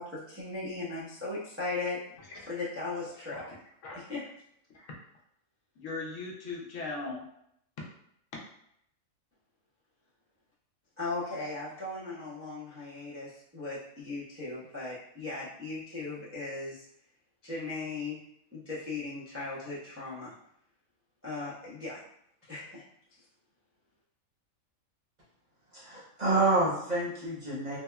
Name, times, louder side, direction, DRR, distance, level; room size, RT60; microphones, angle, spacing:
voice 1, 0.0-2.0 2.4-3.4 3.9-4.3 11.0-16.8 17.4-18.2 18.5-20.3 21.2-22.0 22.4-22.8, left 3 dB, 20° right, -9 dB, 0.3 m, -37 dB
voice 2, 5.8-7.3, left 3 dB, 70° left, -2 dB, 0.9 m, -39 dB
voice 3, 25.7-27.8, right 2 dB, 40° right, -7 dB, 0.7 m, -28 dB
3.4 x 2.0 x 2.2 m, 0.72 s
omnidirectional pair, 1.4 m